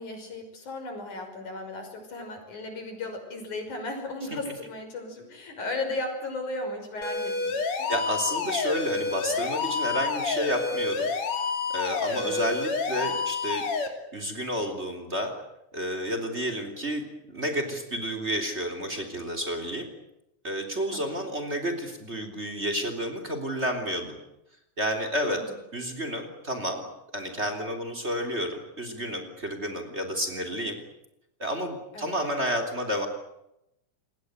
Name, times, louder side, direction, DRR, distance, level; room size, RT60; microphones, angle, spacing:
voice 1, 0.0-8.0 12.1-12.5 13.0-13.1 20.9-21.3 25.2-25.5 31.9-32.2, left 2 dB, 90° left, 5 dB, 7.1 m, -36 dB
sound 1, 7.0-13.9, left 4 dB, 65° left, 4.2 m, -29 dB
voice 2, 7.9-11.1 11.7-13.6 14.1-15.3 15.7-19.9 20.4-24.2 24.8-25.4 25.7-26.8 27.1-30.8 31.4-33.1, equal, 20° right, 6 dB, 3.6 m, -30 dB
27.5 x 21.5 x 8.1 m, 0.83 s
omnidirectional pair, 3.4 m